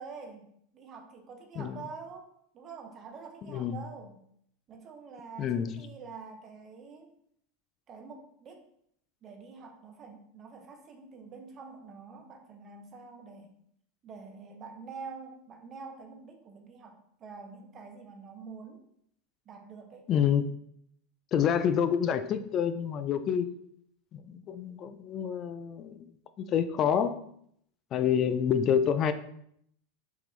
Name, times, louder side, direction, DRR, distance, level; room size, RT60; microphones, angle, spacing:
voice 1, 0.0-4.2 4.7-7.1 7.9-8.6 9.2-13.5 14.0-18.8 19.5-20.1, right 5 dB, 35° right, 4 dB, 0.7 m, -46 dB
voice 2, 3.5-3.8 5.4-5.8 20.1-20.4 21.3-23.5 24.1-26.1 26.4-27.2 27.9-29.1, left 8 dB, 40° left, 11 dB, 0.4 m, -28 dB
3.6 x 3.4 x 3.2 m, 0.70 s
hypercardioid pair, 110°, 0 cm